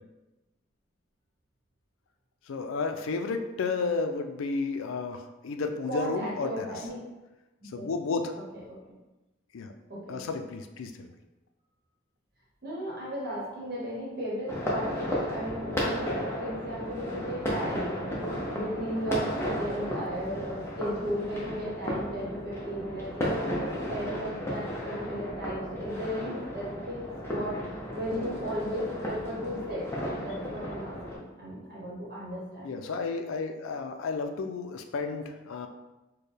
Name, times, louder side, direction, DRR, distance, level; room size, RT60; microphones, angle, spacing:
voice 1, 2.5-6.7 7.7-8.3 9.5-9.7 10.1-11.1 32.6-35.7, left 4 dB, 85° left, 6 dB, 0.4 m, -32 dB
voice 2, 5.9-7.0 7.8-7.9 8.9-9.0 9.9-10.2 12.6-17.9 18.5-27.0 27.3-27.5 27.9-29.9 30.2-32.7, equal, 50° right, -6 dB, 1.0 m, -35 dB
sound 1, 14.5-31.2, equal, 10° left, 0.6 m, -34 dB
4.4 x 2.2 x 3.3 m, 1.1 s
head